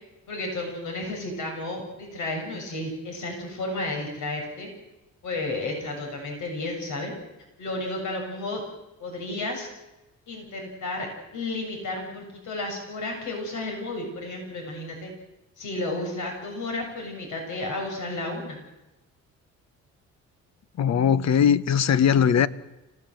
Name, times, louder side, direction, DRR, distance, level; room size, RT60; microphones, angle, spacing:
voice 1, 0.3-4.7 5.2-7.1 7.6-8.6 9.0-9.7 10.3-15.1 15.6-18.6, left 2 dB, 75° left, 7.3 m, -32 dB
voice 2, 20.8-22.5, left 8 dB, 60° left, 1.1 m, -20 dB
27.0 x 18.0 x 7.9 m
cardioid pair, 90°, 30 cm